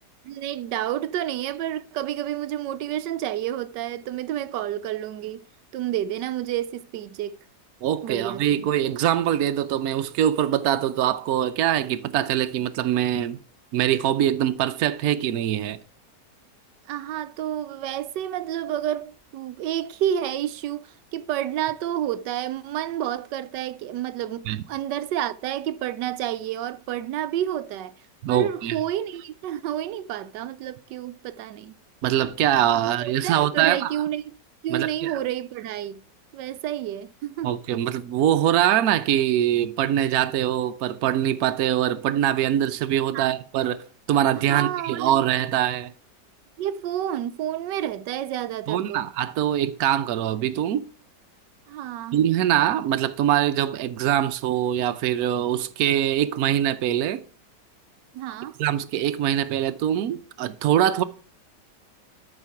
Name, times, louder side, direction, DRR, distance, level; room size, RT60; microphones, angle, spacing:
voice 1, 0.2-5.4 5.7-7.4 8.0-8.7 16.9-28.0 28.3-31.7 33.0-34.3 34.6-36.0 36.3-37.5 43.1-43.3 44.5-45.2 46.6-49.1 51.7-52.2 58.1-58.6, right 11 dB, 85° right, 1.2 m, -30 dB
voice 2, 7.8-13.4 13.7-15.8 24.5-24.6 28.2-28.8 32.0-33.9 34.7-35.1 37.4-45.9 48.7-50.8 52.1-57.2 58.6-61.0, right 11 dB, 65° right, 1.1 m, -23 dB
12.5 x 4.9 x 4.8 m
omnidirectional pair, 1.8 m